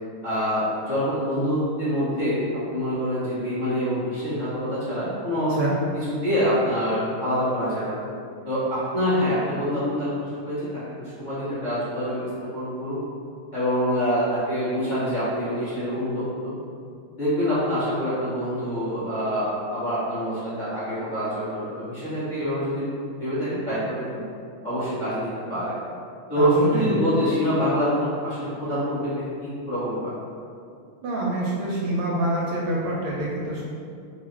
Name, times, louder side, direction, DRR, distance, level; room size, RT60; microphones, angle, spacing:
voice 1, 0.2-2.4 2.7-5.5 5.9-8.0 8.4-13.0 13.5-16.6 17.2-22.9 23.2-24.2 24.6-25.8 26.3-30.1, equal, 25° left, -13 dB, 1.2 m, -26 dB
voice 2, 26.3-26.9 31.0-33.7, right 1 dB, 85° right, -5 dB, 1.5 m, -26 dB
3.7 x 2.4 x 4.4 m, 2.4 s
omnidirectional pair, 2.3 m